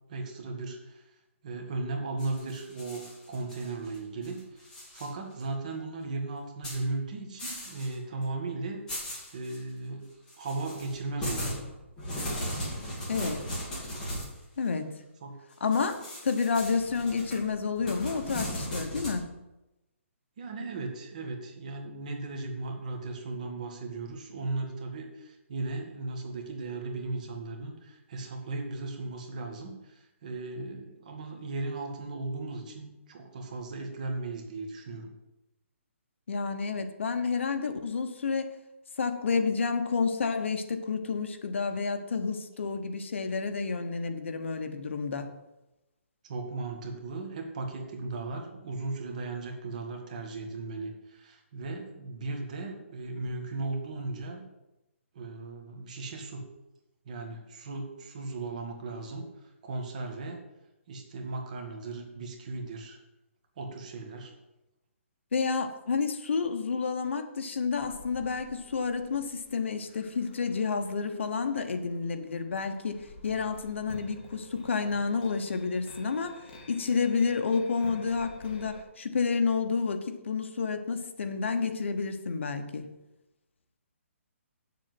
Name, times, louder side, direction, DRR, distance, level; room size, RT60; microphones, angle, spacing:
voice 1, 0.1-1.1 1.4-4.7 4.9-8.8 9.3-10.1 10.4-11.5 15.2-15.4 20.4-35.1 46.2-54.4 55.1-56.4 57.1-59.3 59.6-60.4 60.9-63.0 63.6-64.3, right 3 dB, 35° right, 3 dB, 1.9 m, -36 dB
sound 1, 2.2-4.0 4.2-5.1 5.4-5.5 6.6-6.8 7.4-7.9 8.2-8.3 8.9-9.6 10.3-14.4 15.7-19.2, equal, 10° left, 2.7 m, -37 dB
voice 2, 13.1-13.4 14.6-14.9 15.6-19.2 36.3-38.5 39.0-45.3 65.3-76.4 76.7-82.9, left 5 dB, 60° left, 7 dB, 1.2 m, -30 dB
sound 2, 67.7-78.8, left 1 dB, 25° left, 1.9 m, -51 dB
7.6 x 7.4 x 7.9 m, 0.97 s
hypercardioid pair, 175°, 7 cm